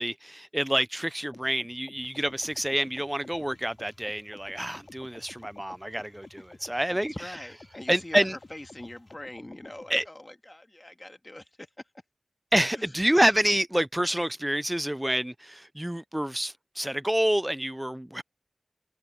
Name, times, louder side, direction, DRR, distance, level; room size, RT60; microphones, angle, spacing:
voice 1, 0.0-7.1 7.9-8.4 9.9-10.0 12.5-18.2, right 1 dB, 15° right, 0.5 m, -27 dB
sound 1, 1.3-10.1, left 2 dB, 75° left, 4.3 m, -52 dB
sound 2, 2.0-9.2, left 2 dB, 55° left, 4.6 m, -60 dB
voice 2, 6.7-11.4 12.7-12.9, left 1 dB, 35° left, 1.7 m, -43 dB
wide cardioid pair, 55°, 0 cm